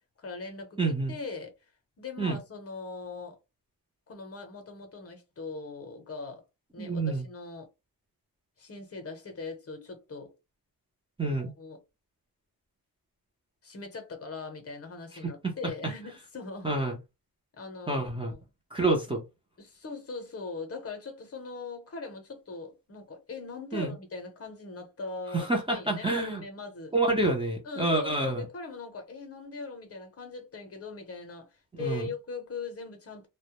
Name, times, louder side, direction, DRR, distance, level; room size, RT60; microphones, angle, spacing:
voice 1, 0.2-1.5 2.0-3.4 4.1-6.4 6.7-7.7 8.6-10.3 11.2-11.8 13.6-16.7 17.5-18.4 19.6-26.9 27.6-33.3, left 4 dB, 40° left, 0.7 m, -40 dB
voice 2, 0.8-1.1 2.2-2.4 6.8-7.2 11.2-11.5 15.4-15.5 16.6-17.0 17.9-18.3 18.7-19.2 23.7-23.9 25.3-26.4 26.9-28.4 31.7-32.0, right 2 dB, 15° right, 0.5 m, -28 dB
2.1 x 2.1 x 2.8 m
wide cardioid pair, 120°, 37 cm